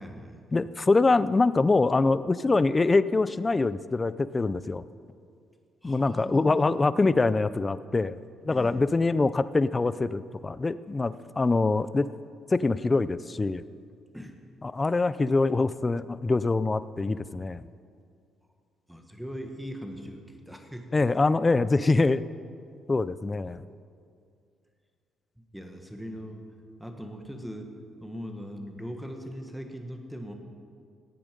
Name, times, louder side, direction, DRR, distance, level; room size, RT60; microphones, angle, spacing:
voice 1, 0.0-0.4 5.8-7.2 8.5-8.8 14.1-14.4 18.9-20.9 25.5-26.4 26.8-27.7 28.0-30.3, equal, ahead, 4 dB, 1.5 m, -40 dB
voice 2, 0.5-4.8 5.8-8.2 8.4-12.1 12.5-13.6 14.6-17.6 20.9-22.2 22.9-23.6, left 3 dB, 25° left, 16 dB, 0.4 m, -24 dB
16.5 x 9.0 x 5.2 m, 2.3 s
cardioid pair, 90°, 0 cm